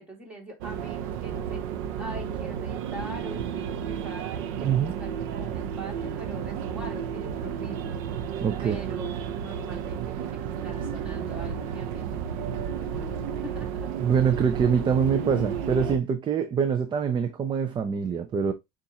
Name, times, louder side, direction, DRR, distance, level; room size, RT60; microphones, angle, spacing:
voice 1, 0.0-8.3 8.6-9.1 9.4-13.9, equal, 5° right, 2.0 m, -43 dB
sound 1, 0.6-16.0, right 8 dB, 85° right, 0.6 m, -32 dB
voice 2, 4.6-4.9 8.4-8.9 14.0-18.5, right 7 dB, 30° right, 0.5 m, -25 dB
6.8 x 2.5 x 2.9 m
supercardioid pair, 115°, 17 cm